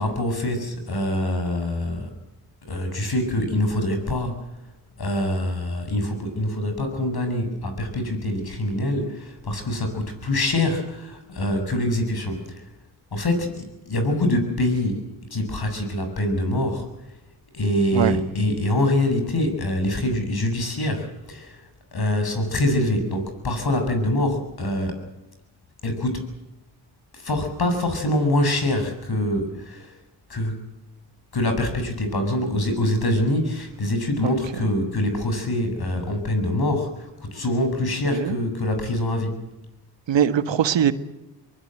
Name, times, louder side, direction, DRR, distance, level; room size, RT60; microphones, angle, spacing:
voice 1, 0.0-2.1 2.6-4.4 5.0-12.5 13.1-16.9 17.5-21.6 21.9-25.0 25.8-26.3 27.1-29.9 30.3-30.6 31.3-39.4, left 1 dB, 55° left, 6 dB, 7.4 m, -24 dB
voice 2, 40.1-40.9, right 9 dB, 70° right, 12 dB, 1.6 m, -21 dB
23.5 x 21.0 x 7.9 m, 0.95 s
supercardioid pair, 45°, 46 cm